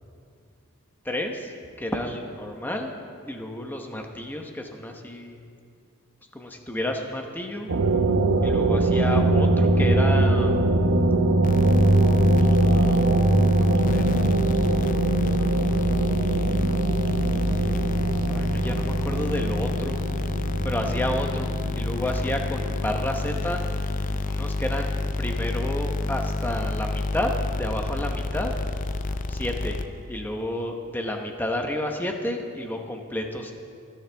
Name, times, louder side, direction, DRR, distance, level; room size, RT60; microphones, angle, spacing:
voice 1, 1.0-1.5 1.8-2.9 3.2-5.4 6.3-7.7 8.4-10.6 12.7-13.3 13.7-14.2 18.3-20.0 20.6-21.5 21.7-23.6 24.3-28.5 29.3-29.8 30.1-33.5, left 1 dB, 10° left, 3 dB, 1.0 m, -31 dB
sound 1, 7.7-24.0, right 2 dB, 90° right, 0.8 m, -22 dB
sound 2, 11.4-30.2, left 2 dB, 35° left, 0.5 m, -28 dB
26.5 x 9.7 x 3.5 m, 2.3 s
head